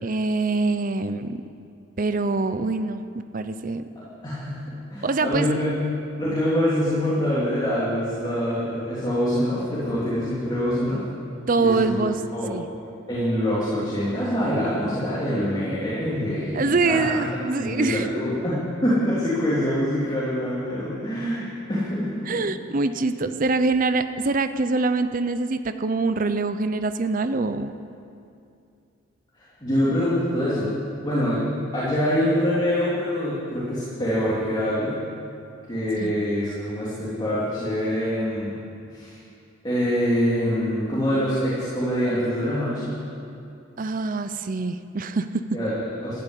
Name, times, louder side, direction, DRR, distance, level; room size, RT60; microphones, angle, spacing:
voice 1, 0.0-1.4 2.0-3.8 5.0-5.5 11.5-12.2 12.5-12.7 16.5-18.1 22.3-27.8 36.0-36.1 43.8-45.4, right 3 dB, 45° right, 10 dB, 0.6 m, -24 dB
voice 2, 4.0-4.6 4.9-5.8 6.2-11.0 11.6-11.9 12.3-12.5 13.1-22.4 29.6-30.7 31.0-31.5 31.7-35.0 35.7-38.5 38.9-39.2 39.6-43.0 45.5-46.2, equal, 20° left, -9 dB, 3.3 m, -25 dB
14.0 x 11.5 x 8.4 m, 2.5 s
head